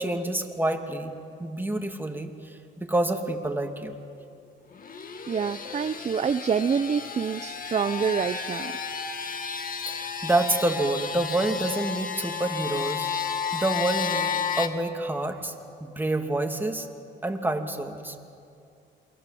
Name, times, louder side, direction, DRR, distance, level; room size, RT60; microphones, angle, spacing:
voice 1, 0.0-4.0 9.8-13.1 13.5-15.5 15.8-16.9 17.2-18.2, right 2 dB, 10° right, 4 dB, 2.6 m, -28 dB
sound 1, 4.7-14.7, left 6 dB, 45° left, 1.9 m, -32 dB
voice 2, 5.3-8.7, right 6 dB, 35° right, 10 dB, 0.7 m, -27 dB
28.5 x 23.0 x 7.8 m, 2.5 s
cardioid pair, 90°, 20 cm